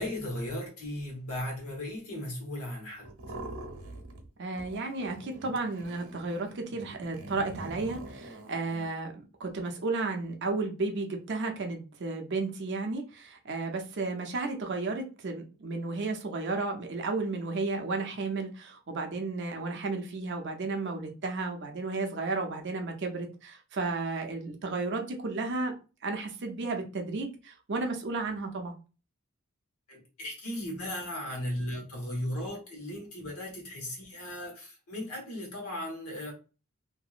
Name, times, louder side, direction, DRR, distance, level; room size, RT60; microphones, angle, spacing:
voice 1, 0.0-3.3 29.9-36.3, left 1 dB, 80° left, 1.3 m, -36 dB
sound 1, 3.0-4.3 4.5-8.9, right 1 dB, 80° right, 0.9 m, -44 dB
voice 2, 4.4-25.7 26.0-28.7, right 3 dB, 50° right, 0.6 m, -33 dB
2.8 x 2.6 x 2.4 m
head